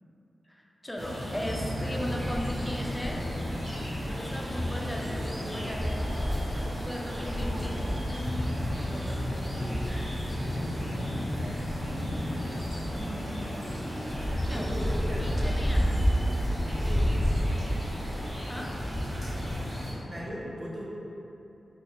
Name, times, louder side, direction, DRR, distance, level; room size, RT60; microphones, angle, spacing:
voice 1, 0.5-3.2 3.9-6.0 6.3-7.9 13.0-13.2 14.5-14.9 15.2-16.1 16.5-17.2 18.4-18.8, equal, 10° left, -2 dB, 0.4 m, -38 dB
sound 1, 1.0-19.9, equal, 25° right, 1.3 m, -30 dB
voice 2, 8.8-10.8 12.6-13.5 14.3-15.7 16.3-17.2 19.0-20.8, equal, 40° right, -5 dB, 0.6 m, -42 dB
2.3 x 2.3 x 2.9 m, 2.9 s
cardioid pair, 45°, 0 cm